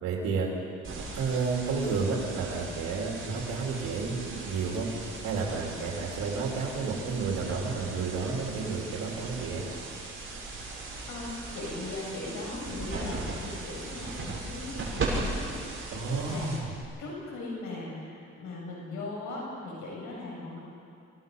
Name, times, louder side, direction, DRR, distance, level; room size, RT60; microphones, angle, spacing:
voice 1, 0.0-0.5 1.1-4.9 5.2-9.7 15.9-16.7, right 4 dB, 90° right, -2 dB, 3.5 m, -31 dB
sound 1, 0.8-16.8, right 3 dB, 45° right, 7.3 m, -38 dB
voice 2, 10.7-16.5 17.0-20.6, left 2 dB, 75° left, -4 dB, 7.0 m, -39 dB
29.5 x 18.0 x 5.5 m, 2.4 s
cardioid pair, 90°, 30 cm